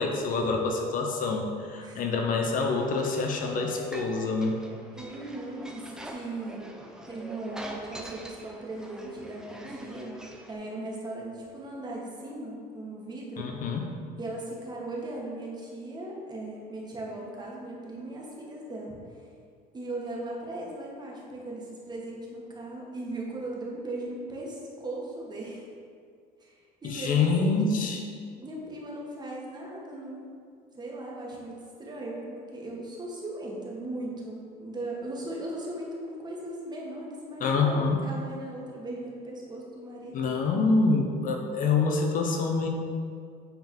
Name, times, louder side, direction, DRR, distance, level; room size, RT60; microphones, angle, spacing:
voice 1, 0.0-4.6 13.4-13.9 26.8-28.0 37.4-38.0 40.1-42.7, left 4 dB, 50° left, 2 dB, 0.8 m, -26 dB
sound 1, 2.6-10.5, right 1 dB, 5° right, 0.7 m, -45 dB
voice 2, 4.9-6.7 7.1-10.2 10.5-13.5 14.2-19.3 19.7-25.6 26.4-27.9 28.4-30.3 30.7-40.2, right 2 dB, 25° right, -3 dB, 1.6 m, -38 dB
9.1 x 3.9 x 4.4 m, 2.2 s
cardioid pair, 120°, 17 cm